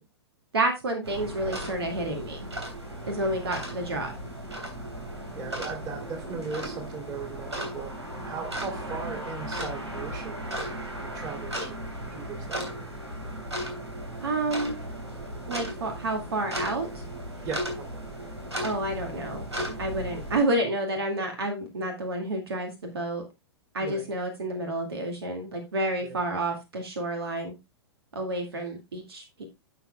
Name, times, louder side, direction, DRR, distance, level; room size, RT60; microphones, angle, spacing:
voice 1, 0.5-2.5 3.1-4.1 14.2-14.8 15.5-17.0 18.6-19.5 19.8-23.3 23.7-27.6 28.1-29.4, right 2 dB, 65° right, 4 dB, 2.1 m, -29 dB
sound 1, 1.0-20.4, equal, 80° right, 3.1 m, -36 dB
voice 2, 5.3-12.8 17.4-18.1 23.8-24.1 26.0-26.2, right 5 dB, 25° right, 3 dB, 2.9 m, -38 dB
11.5 x 6.8 x 2.2 m, 0.21 s
figure-of-eight pair, 110°, 14 cm